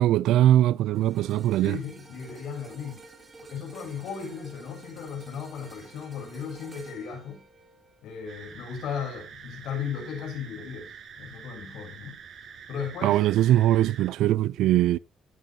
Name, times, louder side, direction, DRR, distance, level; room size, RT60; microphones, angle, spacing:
voice 1, 0.0-1.8 13.0-15.0, right 13 dB, 90° right, 0.5 m, -21 dB
sound 1, 0.9-9.3 9.7-9.9, right 3 dB, 35° right, 6.0 m, -51 dB
voice 2, 1.6-3.0 3.4-7.5 8.0-12.2 12.7-13.2, left 7 dB, 80° left, 7.3 m, -36 dB
sound 2, 8.3-14.1, right 7 dB, 65° right, 6.8 m, -46 dB
17.0 x 9.2 x 2.9 m
cardioid pair, 90°, 0 cm